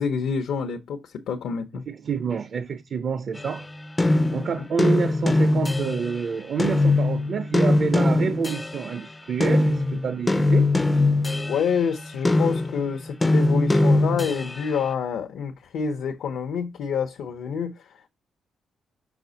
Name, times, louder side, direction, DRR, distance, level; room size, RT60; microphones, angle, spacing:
voice 1, 0.0-1.8 4.6-4.7 11.5-18.1, left 6 dB, 75° left, 0.8 m, -27 dB
voice 2, 1.9-3.7 4.3-10.7, right 6 dB, 45° right, 0.5 m, -28 dB
sound 1, 3.4-6.2 6.6-9.0 9.4-14.7, left 2 dB, 15° left, 0.4 m, -22 dB
5.9 x 5.0 x 3.9 m
cardioid pair, 155°, 0 cm